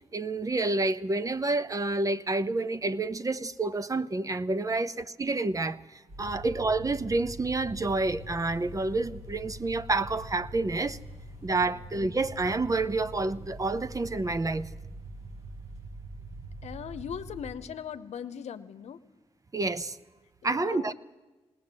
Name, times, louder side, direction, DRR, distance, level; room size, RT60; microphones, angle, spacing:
voice 1, 0.1-11.0 11.4-14.7 19.5-20.0 20.4-20.9, right 2 dB, 30° right, 0.8 m, -29 dB
sound 1, 6.1-17.4, right 2 dB, 75° right, 7.9 m, -43 dB
voice 2, 16.6-19.0 20.4-20.9, left 8 dB, 80° left, 0.9 m, -40 dB
19.5 x 18.5 x 7.5 m
cardioid pair, 70°, 11 cm